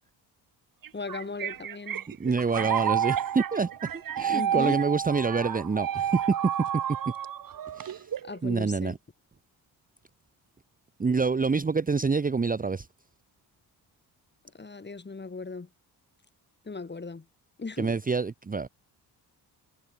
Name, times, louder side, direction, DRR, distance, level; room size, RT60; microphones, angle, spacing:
sound 1, 0.8-8.4, right 10 dB, 55° right, 1.6 m, -30 dB
voice 1, 0.9-2.1 4.3-4.8 8.2-9.0 14.5-15.7 16.6-17.3 17.6-18.0, left 4 dB, 25° left, 4.1 m, -37 dB
voice 2, 2.2-6.8 7.7-8.1 8.4-9.0 11.0-12.9 17.8-18.7, right 4 dB, 20° right, 1.0 m, -27 dB
cardioid pair, 80°, 40 cm